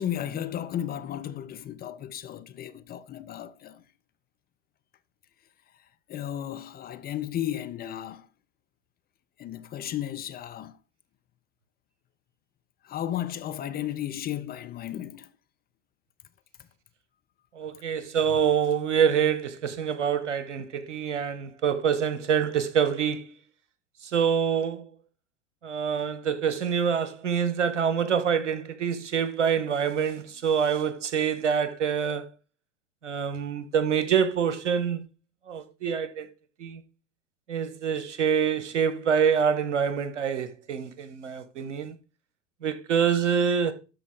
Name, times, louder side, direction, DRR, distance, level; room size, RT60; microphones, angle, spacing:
voice 1, 0.0-3.8 6.1-8.3 9.4-10.8 12.8-15.3, left 11 dB, 25° left, 0.6 m, -34 dB
voice 2, 17.5-23.3 24.1-24.9 25.6-32.2 33.0-35.0 35.5-36.3 36.6-36.8 37.5-42.0 42.6-43.7, right 7 dB, 75° right, 1.4 m, -26 dB
12.5 x 5.2 x 3.8 m
figure-of-eight pair, 85°, 37 cm